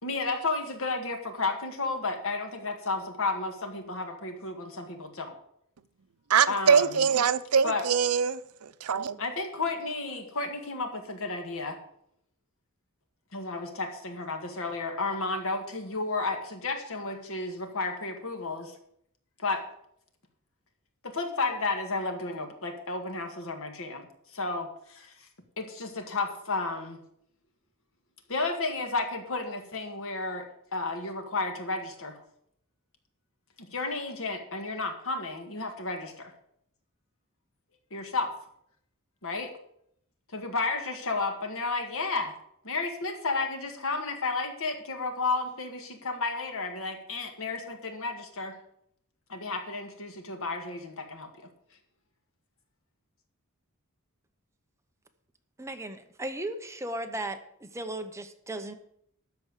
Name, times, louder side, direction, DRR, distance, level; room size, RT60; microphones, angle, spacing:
voice 1, 0.0-5.4 6.5-7.1 7.6-7.8 9.2-11.8 13.3-18.7 19.4-19.6 21.0-24.1 24.3-25.1 25.6-27.0 28.3-32.2 33.6-36.3 37.9-38.3 39.2-39.5 40.3-42.3 42.6-48.6 49.3-51.3, left 3 dB, 65° left, 1.9 m, -32 dB
voice 2, 6.3-9.2, right 6 dB, 85° right, 0.6 m, -24 dB
voice 3, 55.6-58.7, right 1 dB, 15° right, 0.9 m, -36 dB
13.0 x 4.7 x 8.4 m
head